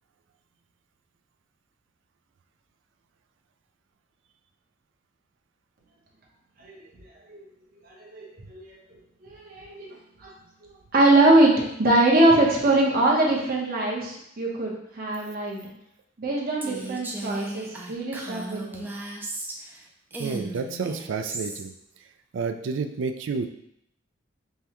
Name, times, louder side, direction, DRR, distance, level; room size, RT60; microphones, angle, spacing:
voice 1, 7.8-8.8 9.2-10.3 10.9-15.6 16.2-18.9, right 2 dB, 55° right, -3 dB, 1.0 m, -22 dB
Female speech woman speaking, 16.6-19.8 20.1-21.6, right 2 dB, 10° right, 0.4 m, -36 dB
voice 2, 20.2-21.7 22.3-23.5, right 5 dB, 75° right, 7 dB, 0.4 m, -30 dB
5.4 x 2.2 x 3.0 m, 0.75 s
head